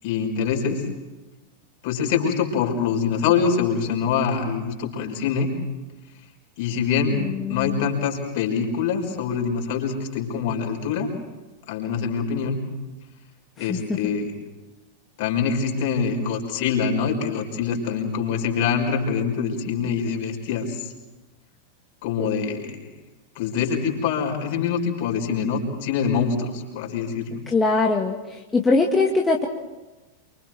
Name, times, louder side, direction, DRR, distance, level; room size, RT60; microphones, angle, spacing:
voice 1, 0.0-0.8 1.8-5.5 6.6-7.2 7.5-11.1 11.7-12.6 13.6-14.3 15.2-20.9 22.0-22.9 23.4-27.4, left 6 dB, 50° left, 2 dB, 5.5 m, -24 dB
voice 2, 7.1-7.9 13.7-14.0 22.2-22.3 27.5-28.2 28.5-29.5, left 3 dB, 15° left, 0 dB, 1.9 m, -22 dB
29.0 x 25.0 x 4.6 m, 1.1 s
figure-of-eight pair, 90°, 0 cm